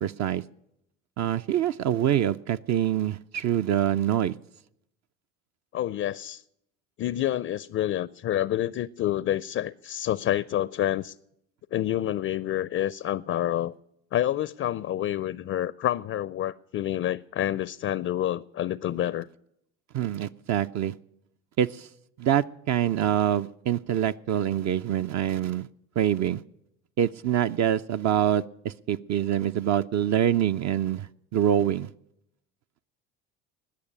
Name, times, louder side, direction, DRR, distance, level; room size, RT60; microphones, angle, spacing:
voice 1, 0.0-0.4 1.2-4.3 19.9-20.9 21.6-21.9 22.2-25.7 26.0-26.4 27.0-31.9, right 10 dB, 45° right, 0.5 m, -25 dB
voice 2, 5.7-6.4 7.0-11.2 11.7-13.7 14.1-19.3, left 12 dB, 35° left, 0.5 m, -28 dB
20.0 x 6.7 x 9.9 m
hypercardioid pair, 65°, 39 cm